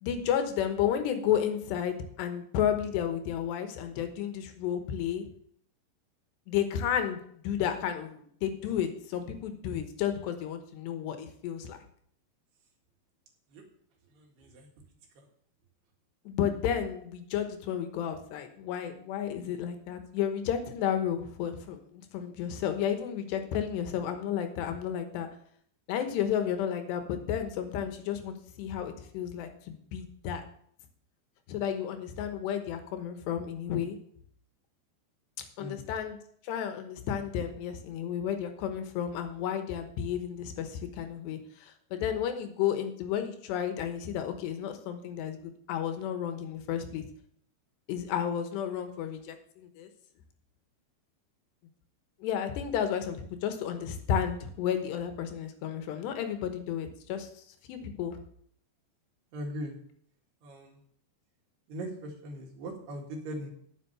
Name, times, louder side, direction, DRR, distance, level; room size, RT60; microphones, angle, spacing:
voice 1, 0.0-5.3 6.5-11.8 16.3-25.3 25.9-30.4 31.5-34.0 35.6-36.2 36.4-47.1 47.9-49.9 52.2-57.3 57.7-58.2, left 9 dB, 80° left, 7 dB, 3.3 m, -32 dB
voice 2, 14.2-14.7 15.2-15.3 35.6-35.8 59.3-59.8 60.4-60.8 61.7-63.5, equal, 70° right, 0 dB, 4.0 m, -40 dB
10.0 x 7.5 x 6.8 m, 0.63 s
omnidirectional pair, 5.0 m